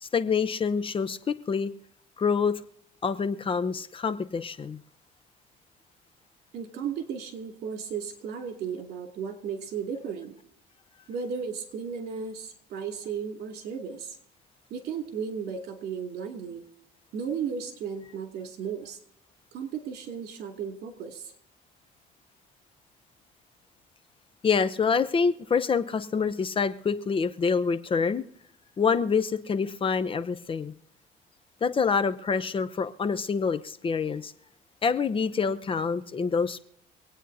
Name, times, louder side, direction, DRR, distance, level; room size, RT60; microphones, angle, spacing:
voice 1, 0.0-1.7 2.2-2.6 3.0-4.8 24.4-28.2 28.8-30.7 31.6-34.3 34.8-36.6, left 5 dB, 30° left, 0.7 m, -26 dB
voice 2, 6.5-10.3 11.1-14.2 14.7-16.6 17.1-19.0 19.5-21.3, right 6 dB, 70° right, 2.7 m, -35 dB
25.5 x 9.1 x 2.8 m
cardioid pair, 110°, 17 cm